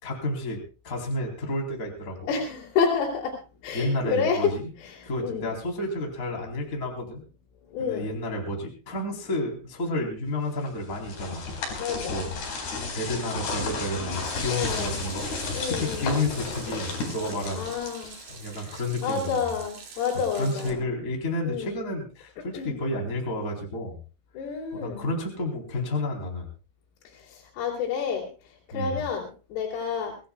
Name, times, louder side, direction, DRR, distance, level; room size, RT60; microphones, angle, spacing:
voice 1, 0.0-2.2 3.7-4.7 5.0-7.2 7.8-11.8 12.1-12.3 12.9-17.7 18.3-19.5 20.4-24.0 24.7-26.5 28.7-29.0, left 1 dB, 20° left, 1 dB, 3.5 m, -31 dB
voice 2, 2.3-3.4 3.6-4.5 4.8-5.5 7.7-8.1 11.8-12.2 14.5-15.0 15.5-16.1 17.5-18.2 18.4-20.8 21.4-21.8 22.5-22.8 24.3-25.1 27.1-30.2, left 6 dB, 90° left, -3 dB, 6.1 m, -29 dB
sound 1, 10.7-18.5, left 3 dB, 55° left, 6.3 m, -33 dB
Water tap faucet / Sink (filling or washing), 14.2-20.7, right 6 dB, 45° right, 3.6 m, -46 dB
25.5 x 17.0 x 2.3 m, 0.35 s
omnidirectional pair, 5.9 m